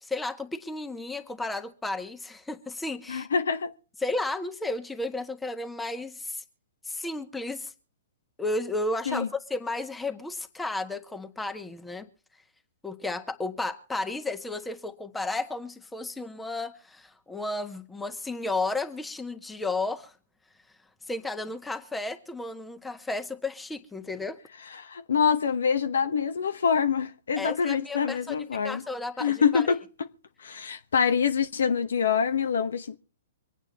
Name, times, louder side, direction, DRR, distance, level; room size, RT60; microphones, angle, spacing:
voice 1, 0.0-3.3 4.0-6.4 6.8-7.7 8.4-12.1 12.8-20.1 21.1-24.4 27.3-29.7, left 2 dB, 5° left, 1.3 m, -33 dB
voice 2, 3.1-3.7 9.1-9.3 24.8-28.8 29.2-29.8 30.4-33.0, left 6 dB, 75° left, 1.0 m, -25 dB
25.0 x 9.1 x 4.0 m
hypercardioid pair, 125°, 0 cm